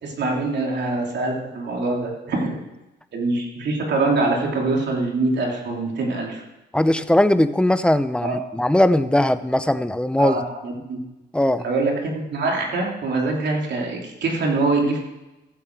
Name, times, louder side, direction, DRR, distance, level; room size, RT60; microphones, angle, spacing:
voice 1, 0.0-2.6 3.1-6.4 8.2-8.4 10.2-11.0 11.6-15.0, right 3 dB, 60° right, 0 dB, 3.1 m, -24 dB
voice 2, 6.7-10.4 11.3-11.6, left 1 dB, 5° left, 12 dB, 0.7 m, -19 dB
15.0 x 7.6 x 4.7 m, 1.0 s
cardioid pair, 90°, 20 cm